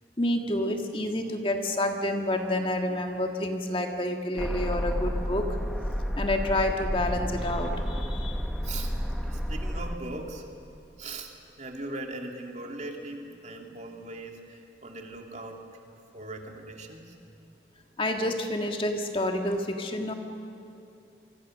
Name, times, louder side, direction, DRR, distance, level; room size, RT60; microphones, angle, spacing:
voice 1, 0.2-5.5 6.2-8.5 18.0-20.1, left 1 dB, 30° left, 4 dB, 1.7 m, -29 dB
sound 1, 4.4-10.0, equal, ahead, 1.4 m, -31 dB
voice 2, 9.2-10.5 11.0-15.6 16.1-17.2, right 2 dB, 40° right, 3 dB, 2.5 m, -40 dB
27.0 x 24.5 x 6.5 m, 2.8 s
head